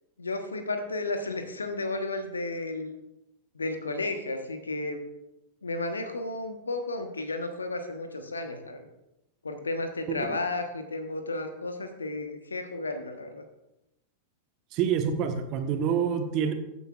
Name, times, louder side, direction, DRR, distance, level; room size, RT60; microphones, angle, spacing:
voice 1, 0.2-2.9 3.5-5.0 5.6-8.9 9.4-13.4, left 2 dB, 75° left, 7 dB, 1.1 m, -33 dB
voice 2, 10.1-10.4 14.7-16.5, right 7 dB, 40° right, 6 dB, 1.1 m, -27 dB
15.0 x 8.4 x 2.5 m, 0.90 s
figure-of-eight pair, 90°, 0 cm